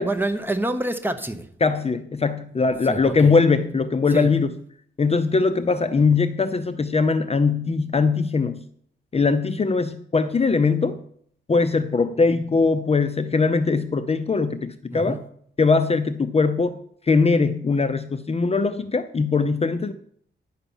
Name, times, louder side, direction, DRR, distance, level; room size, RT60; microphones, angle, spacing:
voice 1, 0.0-1.5 2.9-3.1 4.1-4.3 14.9-15.2, right 1 dB, 10° right, 6 dB, 1.1 m, -26 dB
voice 2, 1.6-4.6 5.0-8.6 9.1-11.0 11.5-15.2 15.6-16.8 17.0-19.9, left 4 dB, 30° left, 10 dB, 0.5 m, -21 dB
11.0 x 5.7 x 7.1 m, 0.63 s
wide cardioid pair, 105°, 20 cm